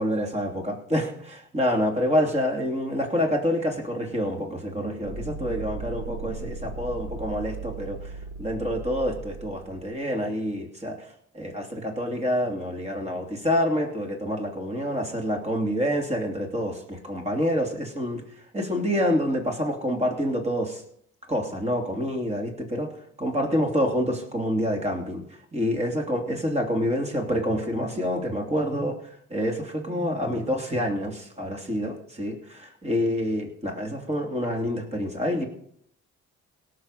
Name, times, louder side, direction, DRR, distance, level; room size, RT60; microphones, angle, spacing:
voice 1, 0.0-8.1 8.4-11.0 11.3-18.2 18.5-20.8 21.3-22.9 23.2-25.2 25.5-29.0 29.3-35.5, equal, 20° right, 2 dB, 2.9 m, -27 dB
sound 1, 5.0-9.9, right 3 dB, 60° right, 1.4 m, -37 dB
17.5 x 6.7 x 5.7 m, 0.69 s
cardioid pair, 90°, 30 cm